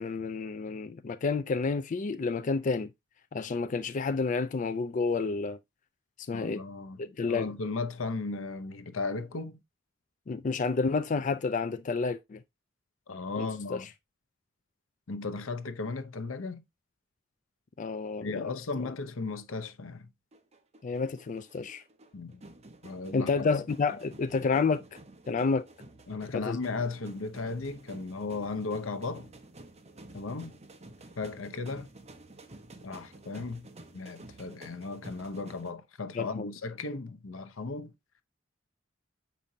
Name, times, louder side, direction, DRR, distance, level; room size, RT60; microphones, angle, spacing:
voice 1, 0.0-2.9 3.3-5.6 6.3-6.6 7.0-7.5 10.3-12.4 13.4-13.8 17.8-18.5 20.8-21.8 23.1-25.0 25.3-25.6 26.3-26.6 36.2-36.5, left 4 dB, 40° left, 0.4 m, -30 dB
voice 2, 6.3-7.0 7.3-9.6 13.1-13.9 15.1-16.6 18.2-20.1 22.1-22.4 22.8-23.5 26.1-29.3 30.1-30.5 31.2-31.9 32.8-33.7 33.9-37.9, left 3 dB, 90° left, 0.8 m, -36 dB
sound 1, 20.3-35.7, right 2 dB, 35° right, 0.9 m, -51 dB
7.5 x 5.2 x 2.8 m
head